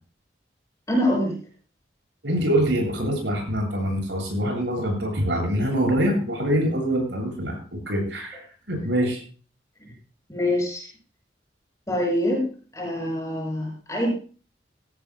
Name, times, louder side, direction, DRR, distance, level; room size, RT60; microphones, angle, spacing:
voice 1, 0.9-1.4 9.8-9.9 10.3-10.9 11.9-12.5 12.7-14.1, left 1 dB, 20° left, -2 dB, 6.6 m, -25 dB
voice 2, 2.2-7.6 7.9-9.2, equal, 85° right, 1 dB, 7.7 m, -24 dB
17.5 x 16.5 x 2.2 m, 0.38 s
head